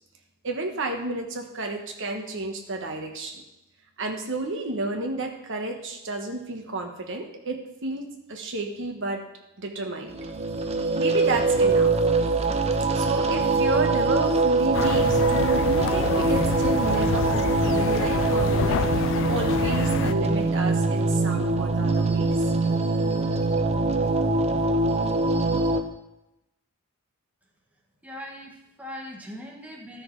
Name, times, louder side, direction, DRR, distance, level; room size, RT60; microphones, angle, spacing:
voice 1, 0.4-3.4 4.0-9.2 9.6-10.1 11.0-11.9 12.9-22.5, right 2 dB, 60° right, 3 dB, 1.3 m, -31 dB
sound 1, 10.1-25.8, right 3 dB, 30° right, 0.7 m, -23 dB
sound 2, 14.7-20.1, left 7 dB, 60° left, 0.3 m, -28 dB
voice 2, 28.0-30.0, left 1 dB, 5° right, -1 dB, 1.5 m, -40 dB
13.0 x 6.3 x 4.7 m, 0.89 s
head